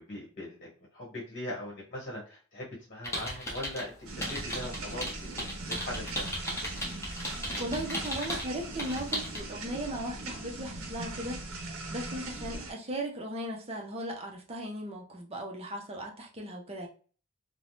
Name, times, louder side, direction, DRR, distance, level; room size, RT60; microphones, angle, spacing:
voice 1, 0.0-6.3, left 1 dB, 35° left, 1.0 m, -40 dB
sound 1, 3.0-3.8 4.2-8.5 8.8-9.4, equal, 10° left, 0.6 m, -35 dB
sound 2, 4.1-12.7, right 2 dB, 70° right, 0.6 m, -40 dB
voice 2, 7.6-16.9, right 1 dB, 25° right, 0.5 m, -37 dB
3.2 x 2.0 x 2.7 m
head